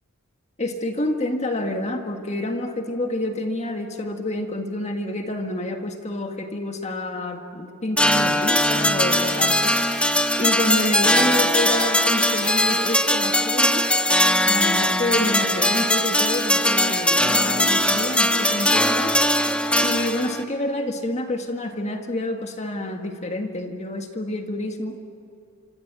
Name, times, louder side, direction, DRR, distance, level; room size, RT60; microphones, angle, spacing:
voice 1, 0.6-9.8 10.4-13.9 14.4-19.1 19.8-25.0, left 1 dB, 30° left, 4 dB, 1.8 m, -28 dB
sound 1, 8.0-20.4, left 1 dB, 5° left, 1.2 m, -20 dB
27.5 x 26.0 x 6.3 m, 2.5 s
head